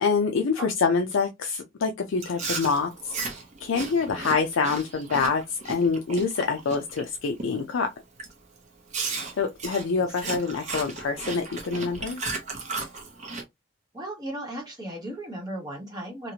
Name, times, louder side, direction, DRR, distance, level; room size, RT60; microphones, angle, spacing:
voice 1, 0.0-3.2 3.6-7.9 9.4-12.2, left 5 dB, 75° left, 0.4 m, -26 dB
Chewing mastication, 2.2-7.0 7.4-7.7 8.2-8.3 8.9-13.4, right 4 dB, 35° right, 0.7 m, -35 dB
voice 2, 9.9-10.4 13.9-16.3, right 1 dB, 20° right, 1.2 m, -36 dB
2.9 x 2.4 x 2.7 m
head